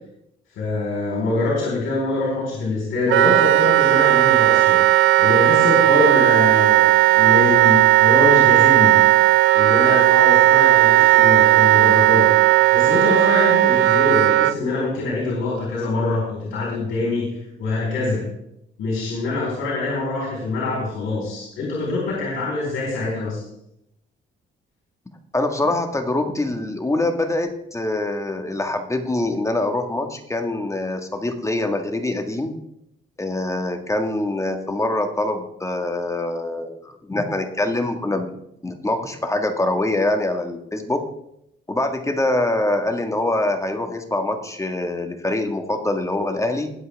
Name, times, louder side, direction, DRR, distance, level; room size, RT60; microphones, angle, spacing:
voice 1, 0.5-4.8 5.2-9.0 9.5-12.3 12.7-18.3 18.8-23.4, left 3 dB, 85° left, -4 dB, 4.3 m, -24 dB
Wind instrument woodwind instrument, 3.1-14.5, right 15 dB, 80° right, 0.5 m, -15 dB
voice 2, 25.3-32.6 33.2-38.3 38.6-41.1 41.7-46.7, left 2 dB, 15° left, 5 dB, 1.7 m, -24 dB
20.5 x 7.8 x 3.5 m, 0.78 s
cardioid pair, 90°, 20 cm